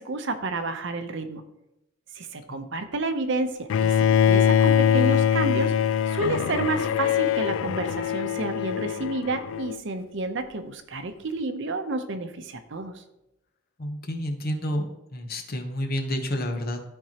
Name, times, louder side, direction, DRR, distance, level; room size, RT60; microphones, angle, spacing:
voice 1, 0.0-1.4 2.1-13.0, right 2 dB, 65° right, 8 dB, 0.7 m, -30 dB
Bowed string instrument, 3.7-9.8, left 8 dB, 75° left, 0.3 m, -23 dB
voice 2, 13.8-14.9 15.1-16.8, equal, 50° left, 4 dB, 1.0 m, -30 dB
13.5 x 4.5 x 2.9 m, 0.89 s
head